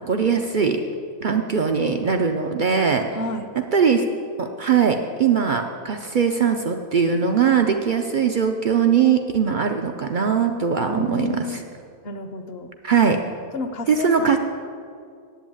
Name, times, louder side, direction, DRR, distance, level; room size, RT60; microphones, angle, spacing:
voice 1, 0.1-0.8 1.2-3.0 3.6-4.0 4.4-11.6 12.8-13.2 13.9-14.4, right 6 dB, 65° right, 5 dB, 0.4 m, -20 dB
voice 2, 3.1-3.4 10.8-11.6 12.0-12.7 13.5-14.4, left 1 dB, 50° left, 8 dB, 0.8 m, -30 dB
8.5 x 8.2 x 8.7 m, 2.3 s
omnidirectional pair, 1.6 m